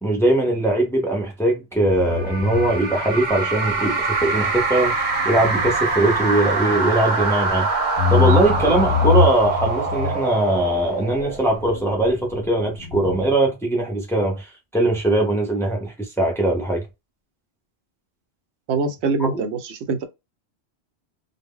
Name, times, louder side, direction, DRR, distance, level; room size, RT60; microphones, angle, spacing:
voice 1, 0.0-7.7 8.1-16.8 19.2-19.4, right 1 dB, 5° left, 0.5 m, -21 dB
sound 1, 1.9-13.3, left 5 dB, 85° left, 0.8 m, -27 dB
sound 2, 2.1-11.7, right 4 dB, 50° right, 0.8 m, -24 dB
voice 2, 18.7-20.0, right 4 dB, 85° right, 0.9 m, -24 dB
2.1 x 2.0 x 3.6 m
omnidirectional pair, 1.1 m